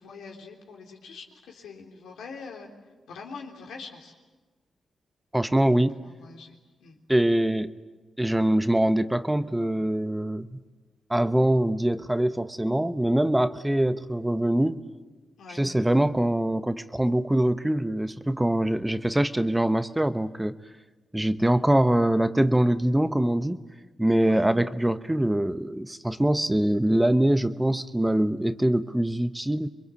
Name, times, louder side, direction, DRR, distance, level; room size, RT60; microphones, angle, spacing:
voice 1, 0.0-2.7 3.1-4.1 6.0-7.0 15.4-15.6 24.2-24.5, left 5 dB, 85° left, 0 dB, 3.6 m, -43 dB
voice 2, 5.3-6.0 7.1-7.7 8.2-10.6 11.1-14.8 15.5-20.6 21.1-23.6 24.0-29.7, right 1 dB, 10° right, 11 dB, 1.0 m, -23 dB
26.5 x 22.0 x 8.5 m, 1.3 s
cardioid pair, 60°, 0 cm